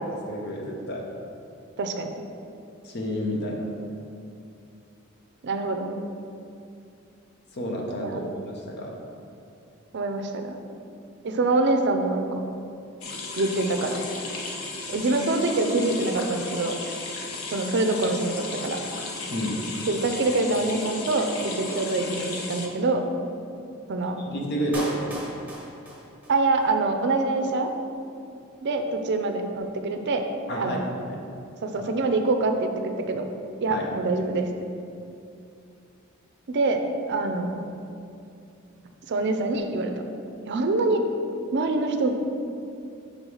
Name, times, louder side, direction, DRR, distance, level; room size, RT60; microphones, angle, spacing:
voice 1, 0.3-1.0 2.8-3.7 7.5-8.2 8.5-8.9 19.3-19.5 24.3-25.2 30.5-30.8 31.1-31.2 33.7-33.8, equal, 55° left, -1 dB, 0.8 m, -30 dB
voice 2, 1.8-2.1 5.4-6.0 8.0-8.2 9.9-10.6 11.2-12.4 13.4-14.0 14.9-16.7 17.5-18.8 19.9-23.0 23.9-24.2 26.3-27.7 28.6-30.2 30.6-30.8 31.6-33.2 33.6-34.5 36.5-36.8 37.1-37.6 39.1-39.9 40.5-41.0 41.5-42.1, right 3 dB, 55° right, 5 dB, 0.5 m, -25 dB
sound 1, 13.0-22.7, left 3 dB, 85° left, 0.7 m, -35 dB
Clapping, 24.7-26.7 27.0-27.1, equal, 10° right, 1.2 m, -37 dB
5.4 x 3.7 x 4.8 m, 2.6 s
head